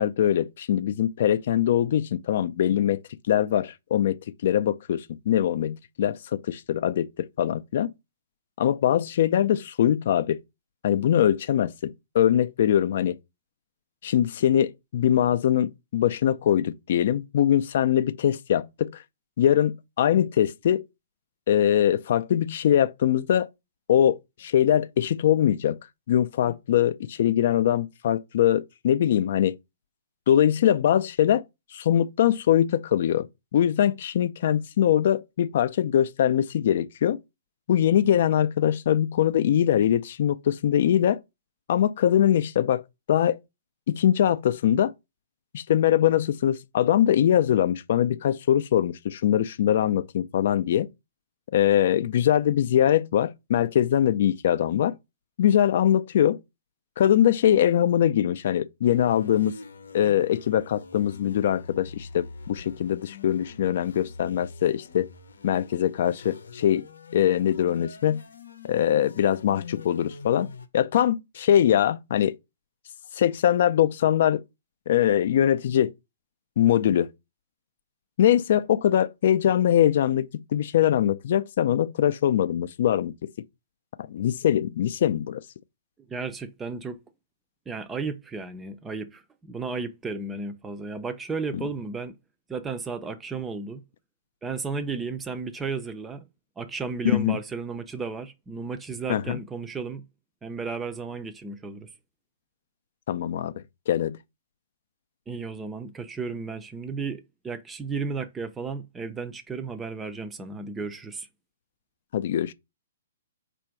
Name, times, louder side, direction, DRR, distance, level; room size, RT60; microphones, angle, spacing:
voice 1, 0.0-3.0 3.3-7.9 8.6-10.4 10.8-13.2 14.0-19.0 19.4-20.8 21.5-23.5 23.9-25.8 26.1-29.6 30.3-31.4 31.7-33.3 33.5-37.2 37.7-41.2 41.7-42.8 43.1-43.4 43.9-44.9 45.5-50.9 51.5-55.0 55.4-56.4 57.0-59.6 59.9-65.1 65.4-66.9 67.1-68.2 68.6-72.4 73.1-74.4 74.9-75.9 76.6-77.1 78.2-83.1 84.0-85.4 91.5-91.7 97.0-97.4 99.1-99.4 103.1-103.5 103.9-104.2 112.1-112.5, left 10 dB, 55° left, 0.4 m, -22 dB
sound 1, 58.8-70.7, left 4 dB, 90° left, 0.7 m, -44 dB
voice 2, 86.1-87.0 87.7-92.1 92.5-93.8 94.4-96.3 96.6-100.0 100.4-101.9 105.3-111.3, right 4 dB, 10° right, 0.5 m, -34 dB
4.4 x 2.5 x 4.5 m
hypercardioid pair, 145°, 0 cm